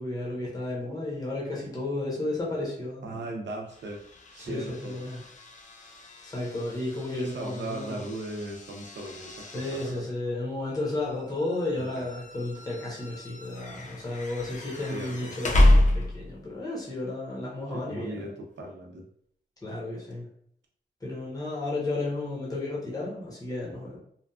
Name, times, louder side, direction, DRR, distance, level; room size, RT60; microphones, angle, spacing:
voice 1, 0.0-3.2 4.4-5.2 5.8-5.9 6.2-8.0 9.5-18.2 19.6-20.3 21.0-24.0, left 2 dB, 20° left, -5 dB, 0.9 m, -33 dB
voice 2, 3.0-4.0 4.3-5.0 7.1-10.1 11.7-12.0 14.9-15.3 17.7-19.0, right 2 dB, 80° right, 1 dB, 0.6 m, -38 dB
sound 1, 3.7-16.5, left 1 dB, 40° left, 0.4 m, -29 dB
2.8 x 2.4 x 2.3 m, 0.67 s
wide cardioid pair, 110°, 18 cm